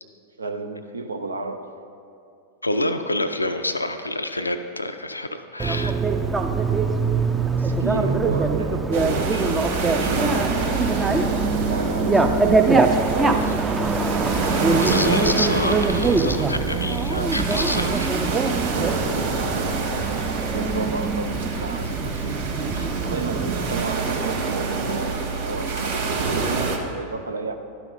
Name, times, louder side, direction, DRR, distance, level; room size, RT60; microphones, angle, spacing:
voice 1, 0.4-1.7 6.8-7.1 7.6-11.0 11.7-14.1 14.7-15.8 17.1-17.4 20.5-22.4 22.7-27.5, right 4 dB, 75° right, 7 dB, 0.5 m, -33 dB
voice 2, 2.6-5.9 14.4-18.1 22.7-22.9, left 1 dB, 85° left, 8 dB, 0.4 m, -27 dB
Bicycle, 5.6-23.8, right 3 dB, 15° right, 0.5 m, -23 dB
sound 1, 8.9-26.8, right 4 dB, 55° right, 1.0 m, -27 dB
12.0 x 5.7 x 4.0 m, 2.5 s
figure-of-eight pair, 90°, 0 cm